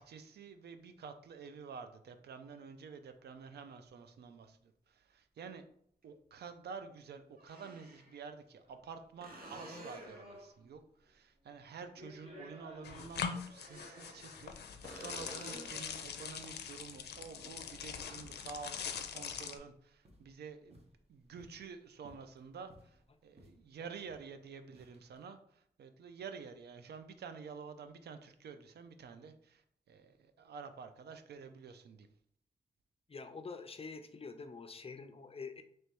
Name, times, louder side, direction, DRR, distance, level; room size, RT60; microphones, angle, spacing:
voice 1, 0.0-4.6 4.9-5.6 6.0-23.0 23.2-29.6 29.9-32.1, right 5 dB, 80° right, 9 dB, 0.5 m, -50 dB
sound 1, 3.9-4.0 6.0-6.1 7.4-8.2 9.2-10.3 13.5-14.5 14.8-15.9 19.5-19.6, right 1 dB, 60° right, 1.2 m, -51 dB
sound 2, 8.6-8.9 9.4-10.8 11.1-11.2 11.8-14.4 15.3-15.4 17.1-17.6 18.1-18.2 18.4-18.9 19.2-19.6 20.1-20.3 20.7-21.7 22.1-23.0 23.4-23.6 23.9-24.3 24.7-25.2, equal, 40° right, 1.2 m, -56 dB
sound 3, 12.8-19.6, left 7 dB, 85° left, 0.4 m, -43 dB
voice 2, 33.1-35.6, left 4 dB, 35° left, 8 dB, 0.5 m, -46 dB
3.2 x 3.0 x 4.4 m, 0.68 s
cardioid pair, 60°, 17 cm